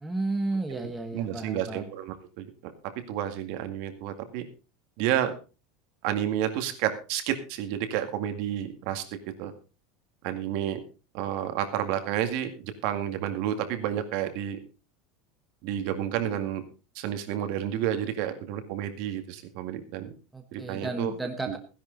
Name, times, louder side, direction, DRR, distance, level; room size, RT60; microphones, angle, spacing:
voice 1, 0.0-1.9 20.3-21.6, right 2 dB, 5° right, 4 dB, 1.2 m, -32 dB
voice 2, 0.7-2.7 3.1-4.4 5.0-5.3 6.0-9.5 10.2-10.8 11.1-14.6 15.6-16.6 17.0-20.1 20.5-21.1 21.5-21.6, right 10 dB, 50° right, 8 dB, 2.1 m, -30 dB
16.0 x 11.0 x 4.0 m, 0.32 s
supercardioid pair, 170°, 0 cm